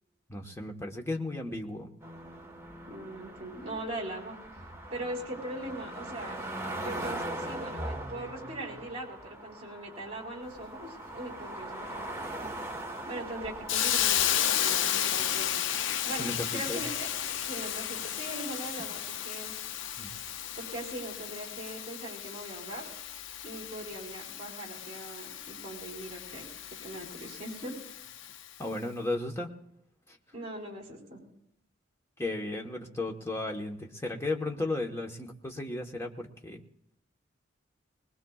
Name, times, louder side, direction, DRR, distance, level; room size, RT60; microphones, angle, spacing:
voice 1, 0.3-1.9 16.2-16.8 20.0-20.1 28.6-29.5 32.2-36.6, left 2 dB, 15° left, 2 dB, 1.2 m, -34 dB
sound 1, 2.0-16.1 16.8-16.9, right 1 dB, 15° right, 1.4 m, -41 dB
voice 2, 2.9-4.4 4.9-6.4 6.7-12.0 13.1-15.5 16.1-17.1 17.4-19.5 20.6-22.9 23.4-26.5 26.8-27.7 30.3-31.2, right 1 dB, 30° right, 0 dB, 4.4 m, -40 dB
Hiss, 13.7-28.5, left 10 dB, 70° left, 0.5 m, -33 dB
22.5 x 20.0 x 2.4 m, 0.79 s
head